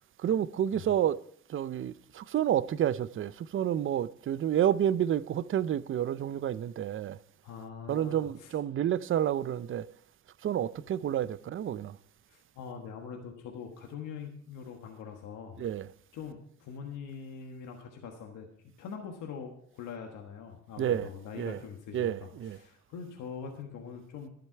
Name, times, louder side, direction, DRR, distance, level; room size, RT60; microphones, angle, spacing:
voice 1, 0.2-1.2 1.5-7.2 7.9-9.9 10.4-12.0 15.6-15.9 20.8-21.1 21.4-21.6 21.9-22.6, right 10 dB, 45° right, 0.5 m, -29 dB
voice 2, 7.4-8.5 12.3-15.6 16.1-18.5 18.8-24.3, left 6 dB, 90° left, 1.4 m, -43 dB
11.5 x 9.6 x 4.5 m
cardioid pair, 90°, 30 cm